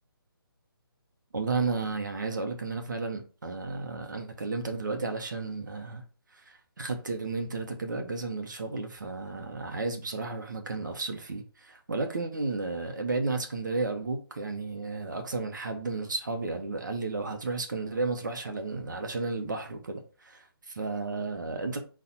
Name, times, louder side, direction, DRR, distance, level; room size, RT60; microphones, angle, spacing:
voice 1, 1.3-6.0 6.3-21.8, right 3 dB, 50° right, 0.8 m, -33 dB
4.2 x 2.4 x 4.2 m
hypercardioid pair, 180°, 13 cm